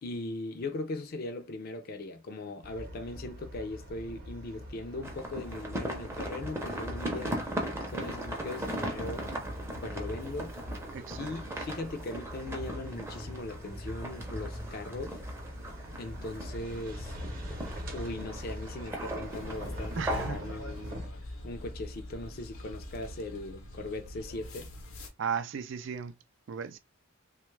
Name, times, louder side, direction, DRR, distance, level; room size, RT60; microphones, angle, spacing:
voice 1, 0.0-7.4 7.9-9.3 9.8-10.5 11.2-15.2 16.0-17.2 17.9-21.0 21.4-24.7, left 2 dB, 45° left, 0.4 m, -39 dB
sound 1, 2.6-21.1, equal, 45° right, 0.8 m, -45 dB
sound 2, 5.0-20.4, equal, 10° right, 0.5 m, -38 dB
voice 2, 10.9-11.4 20.0-20.4 25.2-26.1 26.5-26.8, right 6 dB, 60° right, 0.4 m, -35 dB
sound 3, 19.3-25.1, left 1 dB, 80° left, 0.7 m, -44 dB
2.9 x 2.3 x 3.1 m
head